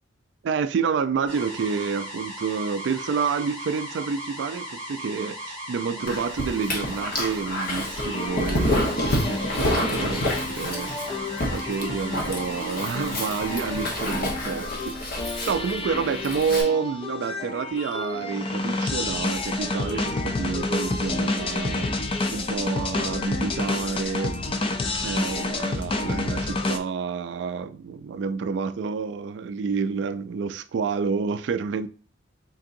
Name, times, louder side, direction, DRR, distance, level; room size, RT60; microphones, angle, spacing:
voice 1, 0.4-10.9 11.5-21.9 22.3-24.6 25.0-31.9, right 5 dB, 65° right, 0.3 m, -29 dB
sound 1, 1.3-14.2, equal, 5° left, 1.5 m, -37 dB
Dog, 6.1-16.6, left 1 dB, 50° left, 0.9 m, -29 dB
sound 2, 7.9-26.8, left 2 dB, 30° left, 0.4 m, -30 dB
3.8 x 3.6 x 2.6 m
head